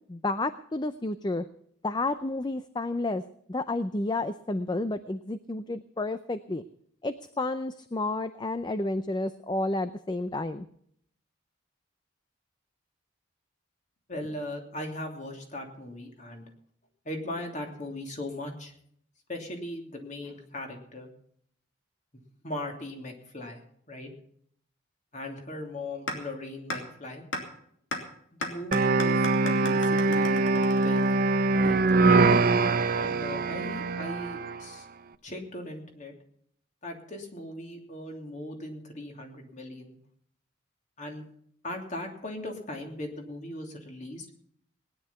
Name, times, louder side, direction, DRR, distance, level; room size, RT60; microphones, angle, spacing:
voice 1, 0.1-1.5 1.8-3.2 3.5-6.6 7.0-10.7, left 2 dB, 20° left, 12 dB, 0.5 m, -31 dB
voice 2, 14.1-16.5 17.0-18.7 19.3-21.1 22.4-24.1 25.1-27.2 28.3-31.0 31.6-31.8 32.9-34.9 35.2-36.1 36.8-40.0 41.0-41.2 41.6-44.3, left 1 dB, 40° left, 3 dB, 2.9 m, -39 dB
sound 1, 26.1-26.2 26.7-26.8 27.3-27.4 27.9-28.0 28.4-31.3, left 2 dB, 70° left, 3.0 m, -34 dB
sound 2, 28.7-34.6, right 3 dB, 45° right, 0.7 m, -23 dB
19.0 x 10.5 x 5.7 m, 0.66 s
head